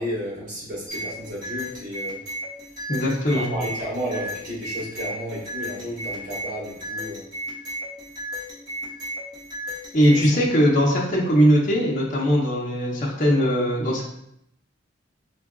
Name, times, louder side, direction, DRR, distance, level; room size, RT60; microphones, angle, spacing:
voice 1, 0.0-2.2 3.3-7.2 10.1-10.3, equal, 45° right, -7 dB, 1.4 m, -32 dB
sound 1, 0.9-10.3, equal, 20° right, 1.3 m, -34 dB
voice 2, 2.9-3.5 9.9-14.0, equal, 45° left, -3 dB, 0.7 m, -20 dB
4.6 x 2.4 x 2.3 m, 0.73 s
head